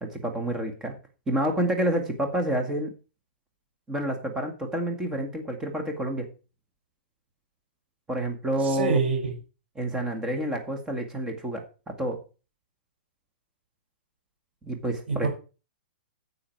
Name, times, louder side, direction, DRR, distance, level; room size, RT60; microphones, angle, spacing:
voice 1, 0.0-1.0 1.3-2.9 3.9-6.3 8.1-9.0 9.8-12.2 14.6-15.3, right 1 dB, 10° right, 4 dB, 1.9 m, -29 dB
voice 2, 8.6-9.3 15.1-15.3, right 5 dB, 85° right, -1 dB, 6.0 m, -25 dB
10.0 x 8.0 x 4.6 m, 0.33 s
hypercardioid pair, 155°, 6 cm